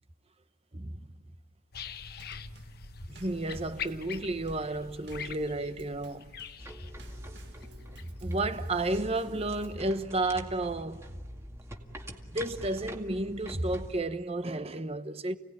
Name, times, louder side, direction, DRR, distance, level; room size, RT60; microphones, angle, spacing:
voice 1, 0.7-1.0 3.1-6.3 8.2-11.0 12.3-15.4, right 2 dB, 30° right, 1.0 m, -32 dB
sound 1, 1.7-9.9 10.4-10.5, left 6 dB, 55° left, 1.1 m, -44 dB
Drum kit / Snare drum / Bass drum, 2.2-9.9, right 2 dB, 60° right, 1.8 m, -57 dB
sound 2, 6.6-14.0, equal, 15° right, 2.1 m, -45 dB
30.0 x 18.5 x 9.8 m
head